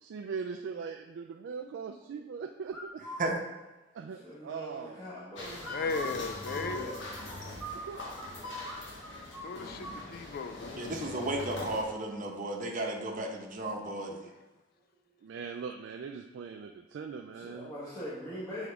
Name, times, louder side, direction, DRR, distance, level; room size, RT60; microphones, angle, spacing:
voice 1, 0.0-3.0 3.9-5.1 7.7-8.0 15.2-17.7, right 5 dB, 70° right, 5 dB, 0.3 m, -40 dB
sound 1, 2.7-3.3 5.6-8.3 8.6-8.8 9.0-10.0, right 1 dB, ahead, 1.1 m, -42 dB
voice 2, 4.0-6.2 6.5-7.0 17.3-18.7, equal, 20° left, -11 dB, 1.4 m, -42 dB
sound 2, 5.4-11.8, left 2 dB, 75° left, 1.3 m, -42 dB
voice 3, 5.7-6.9 9.4-10.9 14.1-14.3, left 4 dB, 55° left, 9 dB, 0.3 m, -37 dB
voice 4, 10.7-14.1, right 1 dB, 45° right, 0 dB, 0.8 m, -34 dB
7.8 x 3.6 x 3.4 m, 1.1 s
head